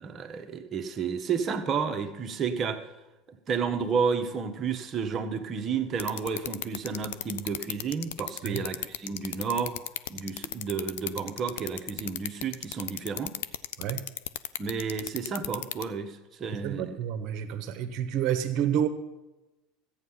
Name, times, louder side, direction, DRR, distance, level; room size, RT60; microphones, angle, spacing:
voice 1, 0.0-2.8 3.3-9.8 10.1-13.4 14.6-17.0, right 6 dB, 35° right, 6 dB, 1.3 m, -31 dB
sound 1, 6.0-15.8, left 14 dB, 70° left, 0.5 m, -33 dB
voice 2, 16.6-18.9, right 9 dB, 55° right, 9 dB, 1.2 m, -29 dB
14.0 x 8.8 x 5.7 m, 1.1 s
hypercardioid pair, 80°, 0 cm